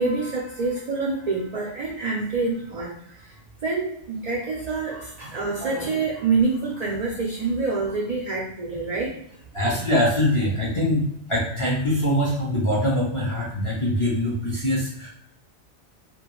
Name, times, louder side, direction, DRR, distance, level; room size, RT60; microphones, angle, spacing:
voice 1, 0.0-3.3 3.6-9.2, right 3 dB, 70° right, -3 dB, 0.4 m, -26 dB
voice 2, 9.5-15.1, left 1 dB, 45° left, -6 dB, 0.4 m, -23 dB
2.3 x 2.1 x 2.9 m, 0.68 s
omnidirectional pair, 1.2 m